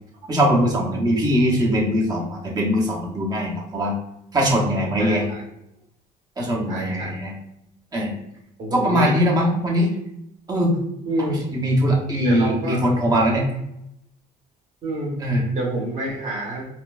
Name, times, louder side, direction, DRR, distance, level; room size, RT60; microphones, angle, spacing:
voice 1, 0.3-3.9 4.3-5.2 6.4-7.3 7.9-8.1 8.7-9.9 10.5-10.8 11.2-13.4 15.2-15.4, equal, 25° right, -2 dB, 1.0 m, -21 dB
voice 2, 5.0-5.4 6.7-7.2 8.6-9.1 11.1-11.5 12.2-12.8 14.8-15.2 15.5-16.7, right 1 dB, 45° right, -2 dB, 1.4 m, -27 dB
4.2 x 2.3 x 2.5 m, 0.80 s
cardioid pair, 110°, 17 cm